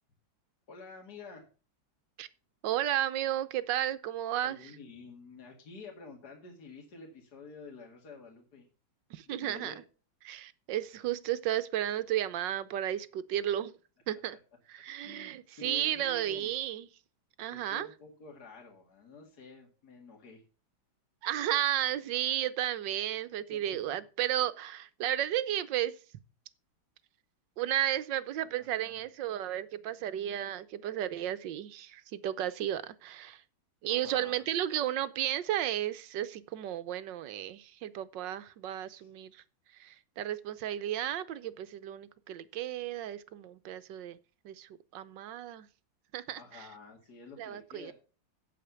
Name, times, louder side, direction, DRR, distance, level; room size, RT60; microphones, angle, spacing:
voice 1, 0.7-1.4 4.4-8.6 9.3-9.8 15.0-16.5 17.5-20.4 23.5-23.6 28.6-29.0 33.9-34.4 38.9-39.1 46.3-47.9, left 3 dB, 50° left, 2.6 m, -49 dB
voice 2, 2.6-4.7 9.1-9.7 10.2-13.7 14.1-14.4 14.7-16.9 17.4-17.9 21.2-25.9 27.6-33.4 33.8-39.4 39.8-44.2 44.4-45.7 46.1-46.7 47.4-47.9, right 12 dB, 70° right, 1.3 m, -33 dB
8.6 x 7.8 x 6.8 m
omnidirectional pair, 2.2 m